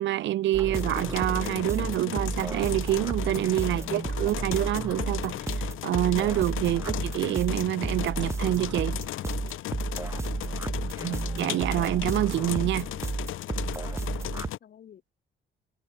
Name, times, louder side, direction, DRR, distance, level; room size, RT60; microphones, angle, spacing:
voice 1, 0.0-9.0 11.0-12.9, right 14 dB, 65° right, 0.6 m, -27 dB
sound 1, 0.5-14.5, right 3 dB, 15° right, 0.5 m, -33 dB
sound 2, 0.7-14.6, left 14 dB, 85° left, 2.4 m, -36 dB
voice 2, 10.2-11.2 14.0-15.0, left 9 dB, 50° left, 5.9 m, -52 dB
cardioid pair, 155°, 20 cm